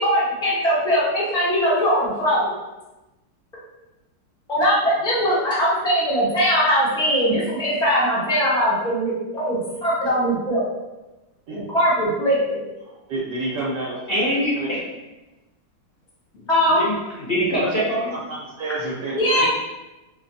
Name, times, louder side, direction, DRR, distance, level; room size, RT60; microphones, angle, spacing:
voice 1, 0.0-2.5 4.5-10.7 11.5-12.6 16.5-16.8 19.2-19.5, equal, 5° left, -8 dB, 0.6 m, -20 dB
voice 2, 13.1-14.0 14.6-14.7 17.6-17.7 18.1-19.5, right 2 dB, 75° right, -6 dB, 1.4 m, -29 dB
voice 3, 14.1-14.8 16.3-16.5 16.7-18.1, equal, 60° left, -7 dB, 0.6 m, -23 dB
5.0 x 2.2 x 2.6 m, 1.0 s
omnidirectional pair, 1.9 m